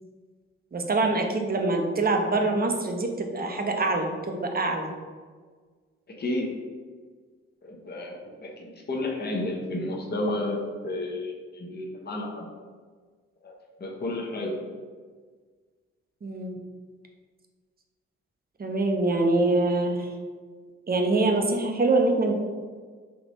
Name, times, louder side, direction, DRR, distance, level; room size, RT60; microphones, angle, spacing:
voice 1, 0.7-4.9 16.2-16.6 18.6-20.1 20.9-22.3, right 2 dB, 25° right, 3 dB, 0.7 m, -24 dB
voice 2, 6.1-6.5 7.6-12.5 13.4-13.5 13.8-14.7, left 1 dB, 30° left, -1 dB, 0.9 m, -32 dB
3.5 x 2.9 x 4.0 m, 1.5 s
hypercardioid pair, 40°, 34 cm